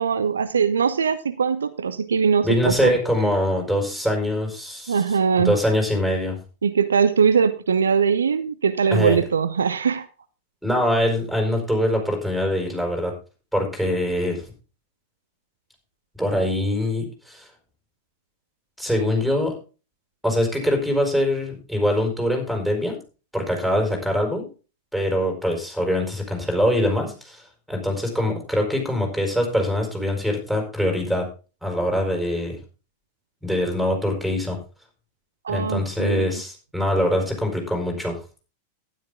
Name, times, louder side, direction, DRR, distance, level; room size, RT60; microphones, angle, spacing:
voice 1, 0.0-2.9 4.9-5.5 6.6-10.1 35.4-36.4, right 6 dB, 70° right, 12 dB, 0.7 m, -21 dB
voice 2, 2.4-6.4 8.9-9.2 10.6-13.1 13.5-14.4 16.2-17.5 18.8-19.6 20.2-23.0 23.3-24.5 24.9-31.3 31.6-32.6 33.4-34.6 35.5-38.1, left 1 dB, ahead, 2 dB, 5.2 m, -23 dB
12.5 x 11.0 x 3.7 m, 0.34 s
figure-of-eight pair, 90°, 0 cm